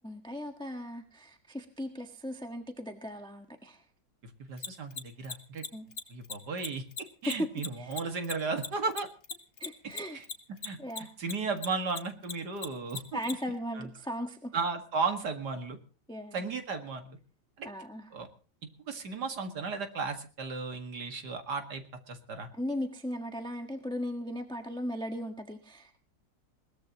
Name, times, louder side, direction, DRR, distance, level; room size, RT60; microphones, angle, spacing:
voice 1, 0.0-3.8 5.7-5.9 7.2-7.5 7.8-7.9 9.6-10.2 10.8-11.1 13.1-14.5 16.1-16.5 17.6-18.1 22.5-26.0, equal, 5° left, 4 dB, 1.3 m, -37 dB
voice 2, 4.5-5.7 6.1-6.8 7.2-9.1 10.1-10.2 10.5-10.8 11.2-13.2 13.7-13.9 14.5-15.8 16.3-17.2 17.6-17.7 18.1-18.3 18.9-22.5, right 4 dB, 70° right, 6 dB, 2.5 m, -35 dB
Mechanisms, 4.6-11.3 11.6-13.3, left 5 dB, 40° left, 1.7 m, -37 dB
21.5 x 18.5 x 3.0 m, 0.36 s
omnidirectional pair, 1.9 m